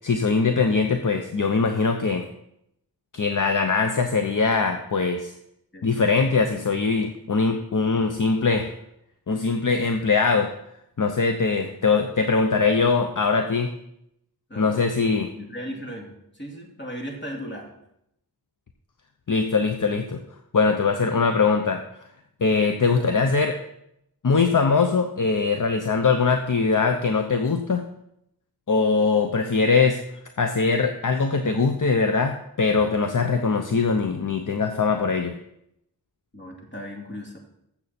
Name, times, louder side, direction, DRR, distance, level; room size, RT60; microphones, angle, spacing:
voice 1, 0.0-2.2 3.1-5.3 5.8-8.7 9.3-10.5 11.0-13.7 14.6-15.3 19.3-20.2 20.5-21.8 22.4-23.6 24.2-27.8 28.7-30.0 30.4-35.3, left 4 dB, 55° left, 5 dB, 0.8 m, -22 dB
voice 2, 5.7-6.2 11.5-11.7 14.5-14.9 15.4-17.7 22.9-23.0 36.3-37.4, equal, 30° left, 0 dB, 2.4 m, -37 dB
13.5 x 7.4 x 4.3 m, 0.78 s
wide cardioid pair, 80°, 38 cm